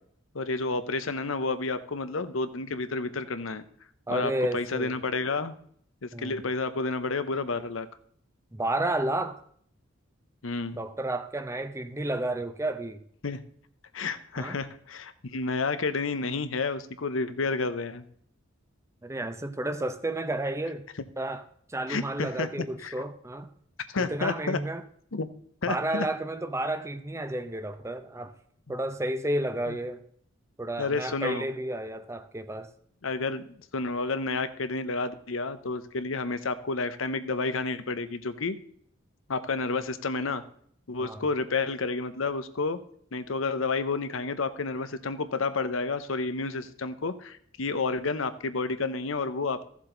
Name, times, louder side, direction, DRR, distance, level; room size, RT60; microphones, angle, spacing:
voice 1, 0.3-3.6 4.1-5.6 6.0-7.9 10.4-10.8 13.2-13.4 13.9-18.0 21.9-22.9 23.9-24.6 25.1-25.3 25.6-26.1 29.7-29.8 30.8-31.5 33.0-33.4 33.7-38.6 39.3-40.4 40.9-42.8 43.1-49.7, left 3 dB, 80° left, 0.8 m, -30 dB
voice 2, 4.1-5.0 6.1-6.4 8.5-9.4 10.7-13.0 14.4-14.6 19.0-20.8 21.2-21.4 21.7-23.5 24.0-24.8 25.7-28.3 28.7-30.0 30.6-32.7 41.0-41.2, right 1 dB, 15° right, 0.7 m, -31 dB
14.5 x 7.4 x 3.9 m
head